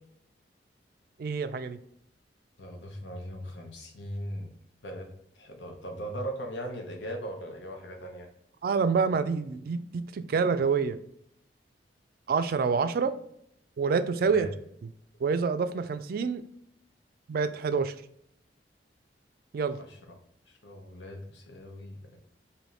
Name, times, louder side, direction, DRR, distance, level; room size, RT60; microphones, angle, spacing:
voice 1, 1.2-1.8 8.6-11.0 12.3-13.1 13.8-14.5 15.2-16.4 17.3-17.9 19.5-19.8, right 5 dB, 55° right, 11 dB, 0.3 m, -27 dB
voice 2, 2.6-4.5 4.8-5.1 5.3-8.3 14.2-14.5 19.7-20.0 20.6-22.2, equal, 90° left, 2 dB, 0.9 m, -39 dB
3.4 x 2.7 x 3.9 m, 0.73 s
head